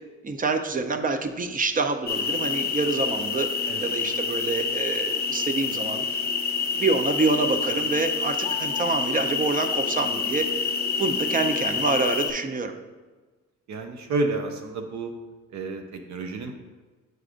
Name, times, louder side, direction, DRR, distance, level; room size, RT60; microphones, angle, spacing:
voice 1, 0.2-3.5 3.8-6.1 6.8-10.6 11.0-12.7, right 3 dB, 30° right, 7 dB, 0.5 m, -26 dB
sound 1, 2.1-12.3, left 5 dB, 35° left, 0.6 m, -27 dB
voice 2, 13.7-15.1 15.5-16.5, right 3 dB, 65° right, 4 dB, 0.6 m, -30 dB
7.9 x 4.8 x 2.5 m, 1.3 s
cardioid pair, 90°, 30 cm